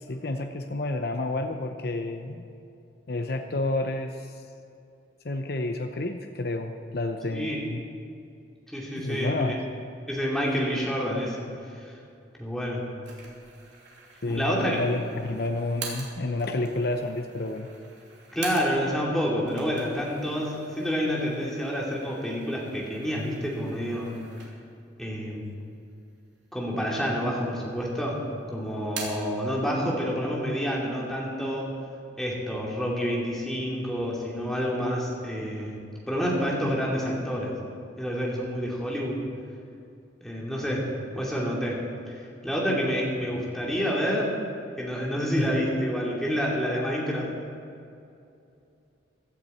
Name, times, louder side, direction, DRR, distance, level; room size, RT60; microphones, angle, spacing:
voice 1, 0.0-2.4 3.1-4.3 5.2-7.8 9.0-9.6 14.2-17.7 45.4-45.5, left 2 dB, 55° left, 5 dB, 0.7 m, -30 dB
voice 2, 8.7-9.5 10.1-11.5 12.4-12.9 14.3-14.8 18.3-24.2 25.0-25.6 26.5-28.2 28.5-31.7 32.2-35.8 36.1-37.5 38.0-39.2 40.2-40.9 41.1-41.8 42.4-44.3 44.8-47.3, equal, ahead, -4 dB, 2.6 m, -28 dB
sound 1, 13.0-19.0 19.4-24.8 25.3-25.4 26.2-26.9 27.2-27.9 28.2-29.3, right 4 dB, 70° right, 3.0 m, -44 dB
16.0 x 12.0 x 4.3 m, 2.6 s
head